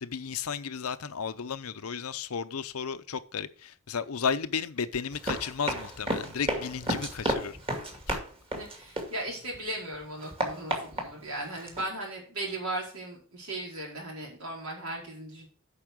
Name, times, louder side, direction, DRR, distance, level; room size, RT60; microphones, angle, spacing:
voice 1, 0.0-7.6 8.1-8.2, left 6 dB, 85° left, 0.7 m, -33 dB
Run, 5.1-9.6 9.9-11.8, right 1 dB, 25° right, 2.3 m, -33 dB
voice 2, 8.5-15.5, right 1 dB, 80° right, 4.6 m, -37 dB
8.7 x 5.6 x 6.1 m
head